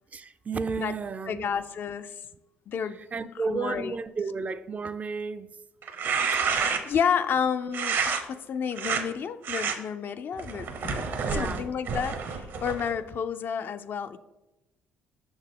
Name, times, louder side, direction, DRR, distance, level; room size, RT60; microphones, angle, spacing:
voice 1, 0.1-1.5 3.1-5.5 11.3-11.7, right 4 dB, 35° right, 0.3 m, -32 dB
voice 2, 1.3-2.2 2.7-3.9 6.4-11.0 11.3-14.2, left 7 dB, 55° left, 0.3 m, -31 dB
sound 1, 5.8-7.0 7.7-8.2 8.7-9.0 9.4-9.8 10.4-13.0, right 6 dB, 65° right, 0.7 m, -29 dB
6.1 x 4.3 x 3.6 m
supercardioid pair, 65°, 4 cm